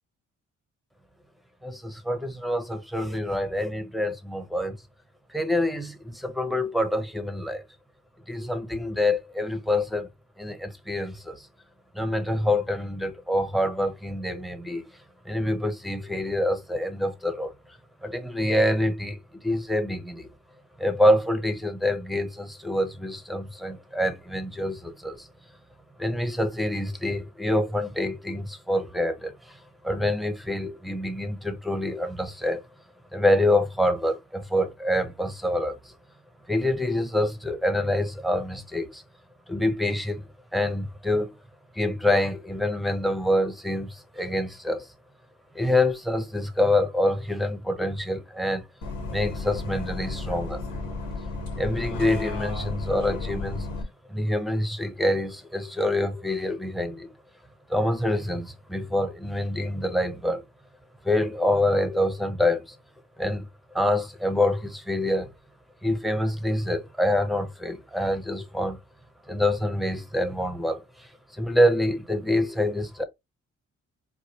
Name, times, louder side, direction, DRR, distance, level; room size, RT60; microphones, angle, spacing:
voice 1, 1.6-4.8 5.3-7.6 8.3-10.1 10.4-11.5 11.9-14.8 15.2-17.5 18.0-20.3 20.8-25.3 26.0-32.6 33.1-35.9 36.5-39.0 39.5-41.3 41.7-44.9 45.5-48.6 49.1-50.6 51.6-53.7 54.1-57.1 57.7-60.4 61.0-62.8 63.2-63.5 63.7-65.3 65.8-68.8 69.3-73.0, left 1 dB, ahead, 0.7 m, -26 dB
Bus, 48.8-53.8, left 3 dB, 85° left, 1.4 m, -33 dB
4.5 x 2.3 x 2.8 m
cardioid pair, 90°, 30 cm